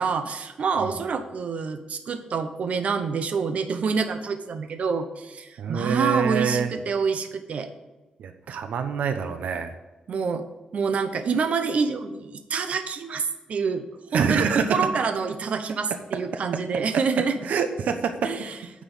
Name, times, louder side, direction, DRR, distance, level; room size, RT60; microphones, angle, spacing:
voice 1, 0.0-7.7 10.1-10.4 10.7-13.8 14.1-17.4 18.2-18.6, right 5 dB, 60° right, 8 dB, 1.0 m, -27 dB
voice 2, 5.6-6.8 8.2-9.7 14.1-14.7 17.4-18.3, right 6 dB, 90° right, 7 dB, 0.9 m, -26 dB
9.5 x 6.1 x 7.1 m, 1.1 s
cardioid pair, 115°, 3 cm